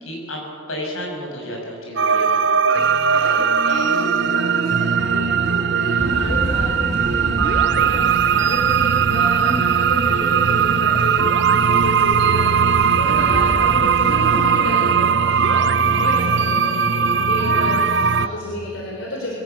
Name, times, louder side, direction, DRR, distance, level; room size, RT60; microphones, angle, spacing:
voice 1, 0.1-2.5, equal, 80° left, 0 dB, 7.3 m, -31 dB
sound 1, 2.0-18.3, right 6 dB, 55° right, 0.7 m, -18 dB
voice 2, 2.7-19.4, equal, 65° left, -3 dB, 3.9 m, -30 dB
sound 2, 6.0-14.3, equal, 30° left, 5.0 m, -31 dB
22.0 x 18.0 x 8.4 m, 2.5 s
head